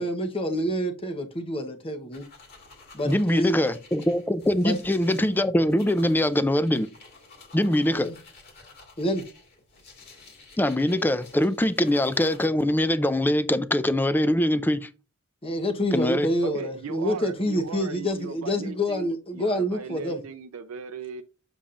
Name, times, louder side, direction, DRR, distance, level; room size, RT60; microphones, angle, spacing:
voice 1, 0.0-2.2 2.9-3.7 4.6-4.8 7.9-8.1 9.0-9.2 15.4-20.2, equal, 25° left, 0.9 m, -27 dB
sound 1, 2.1-12.5, left 3 dB, 50° left, 2.0 m, -51 dB
voice 2, 3.0-6.9 7.5-8.1 10.6-14.9 15.9-16.3, left 1 dB, 10° left, 0.4 m, -23 dB
voice 3, 16.4-21.2, right 5 dB, 75° right, 0.5 m, -38 dB
7.2 x 6.9 x 2.5 m
head